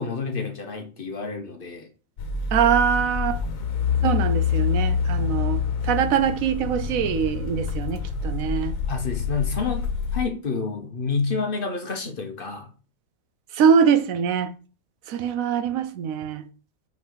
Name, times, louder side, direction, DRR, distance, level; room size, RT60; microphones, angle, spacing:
voice 1, 0.0-1.9 5.2-5.4 8.9-9.9 10.1-12.7, left 4 dB, 45° left, 1.0 m, -29 dB
sound 1, 2.2-10.2, left 6 dB, 90° left, 1.4 m, -26 dB
voice 2, 2.5-3.4 4.0-8.8 13.5-14.5 15.1-16.4, right 7 dB, 85° right, 1.1 m, -23 dB
5.5 x 5.3 x 3.9 m
omnidirectional pair, 1.4 m